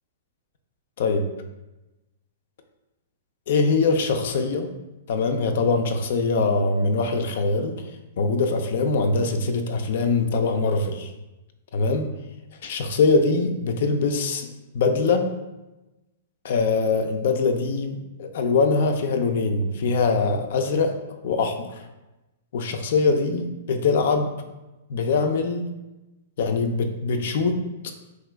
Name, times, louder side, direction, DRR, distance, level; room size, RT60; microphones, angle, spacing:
voice 1, 3.5-4.7 5.1-7.8 8.2-11.1 11.7-12.1 12.6-14.5 14.7-15.3 16.4-21.0 21.2-21.7 22.5-24.3 24.9-25.7 26.4-27.6, left 4 dB, 60° left, 6 dB, 0.3 m, -22 dB
2.9 x 2.4 x 3.1 m, 1.0 s
figure-of-eight pair, 110°, 0 cm